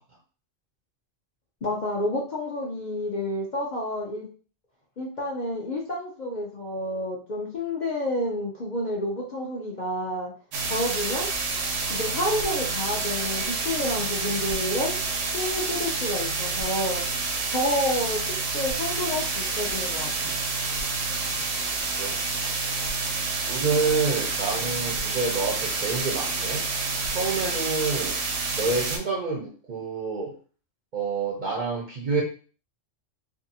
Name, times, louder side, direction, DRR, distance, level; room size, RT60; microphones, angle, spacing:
voice 1, 1.6-4.3 5.0-10.3 10.7-11.3 11.9-14.9 15.3-17.0 17.5-18.2 18.5-20.3, left 1 dB, 55° left, -2 dB, 0.5 m, -29 dB
sound 1, 10.5-29.0, right 3 dB, 80° right, 1.0 m, -28 dB
voice 2, 22.0-22.5 23.5-26.6 27.1-28.2 28.5-30.3 30.9-32.2, right 4 dB, 60° right, -2 dB, 0.5 m, -28 dB
2.7 x 2.4 x 2.7 m, 0.39 s
omnidirectional pair, 1.3 m